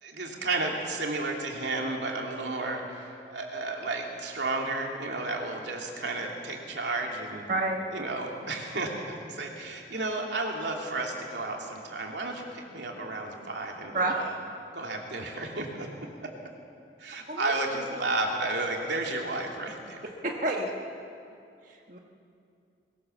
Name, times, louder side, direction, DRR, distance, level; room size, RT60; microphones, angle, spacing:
voice 1, 0.0-7.4 7.9-14.3 14.7-15.9 16.2-16.3 17.0-20.0, right 2 dB, 85° right, 0 dB, 3.0 m, -32 dB
voice 2, 7.5-8.0 13.9-14.1 17.3-17.5 20.2-20.7 21.6-22.0, right 2 dB, 45° right, 0 dB, 1.5 m, -29 dB
21.0 x 18.0 x 7.2 m, 2.5 s
head